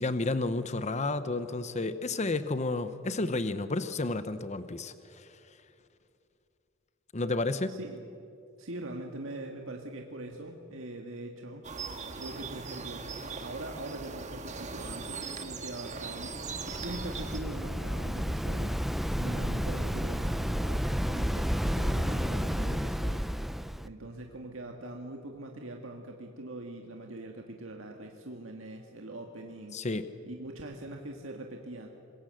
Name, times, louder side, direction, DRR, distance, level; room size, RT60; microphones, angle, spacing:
voice 1, 0.0-5.3 7.1-7.8 29.7-30.1, left 2 dB, 35° left, 12 dB, 0.8 m, -31 dB
voice 2, 8.6-11.7 12.1-16.4 16.8-18.9 19.2-23.3 23.8-29.8 30.3-31.9, right 1 dB, 75° right, 2 dB, 1.8 m, -42 dB
sound 1, 11.6-17.4, right 4 dB, 35° right, 1.7 m, -40 dB
Waves surf, 16.2-23.9, equal, ahead, 0.5 m, -31 dB
25.5 x 22.0 x 7.7 m, 2.6 s
head